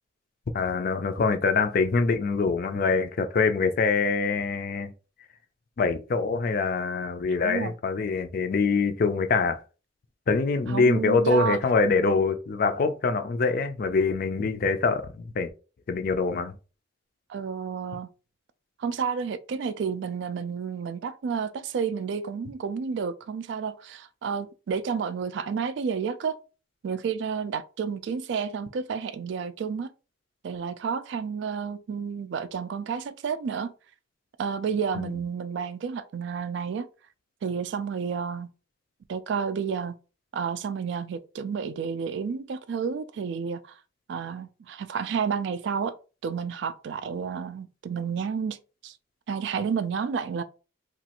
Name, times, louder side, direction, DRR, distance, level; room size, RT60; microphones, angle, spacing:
voice 1, 0.5-4.9 5.8-9.6 10.3-15.5 15.9-16.5 35.0-35.1, left 4 dB, 45° left, 0.4 m, -24 dB
voice 2, 7.3-7.7 10.7-11.6 17.3-18.1 18.8-26.4 26.8-29.9 30.4-33.7 34.4-36.9 37.4-38.5 39.1-40.0 40.3-43.8 44.1-45.9 46.2-48.6 48.8-49.0 49.3-50.4, right 6 dB, 65° right, 0.3 m, -30 dB
3.0 x 2.4 x 2.8 m
head